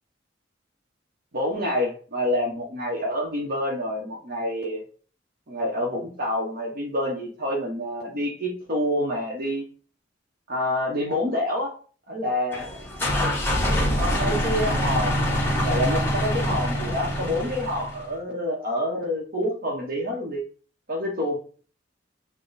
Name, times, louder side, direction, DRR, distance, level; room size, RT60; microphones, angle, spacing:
voice 1, 1.3-4.8 5.5-9.7 10.5-11.7 12.1-12.7 14.0-15.3 15.6-20.4 20.9-21.4, left 1 dB, 55° right, -1 dB, 0.8 m, -27 dB
sound 1, 12.5-18.1, equal, 10° left, 1.2 m, -25 dB
5.9 x 2.2 x 3.9 m, 0.42 s
head